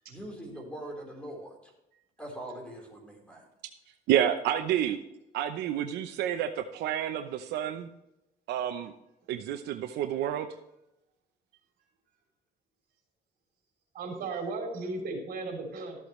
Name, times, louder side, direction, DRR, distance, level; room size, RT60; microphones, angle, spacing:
voice 1, 0.1-1.6 2.2-3.4, right 1 dB, 5° left, 0 dB, 4.1 m, -42 dB
voice 2, 4.1-5.0 5.3-7.9 8.5-8.9 9.3-10.5, right 10 dB, 80° right, 7 dB, 0.8 m, -29 dB
voice 3, 13.9-16.0, right 3 dB, 65° right, 2 dB, 3.6 m, -35 dB
13.5 x 8.3 x 3.2 m, 0.88 s
cardioid pair, 110°, 17 cm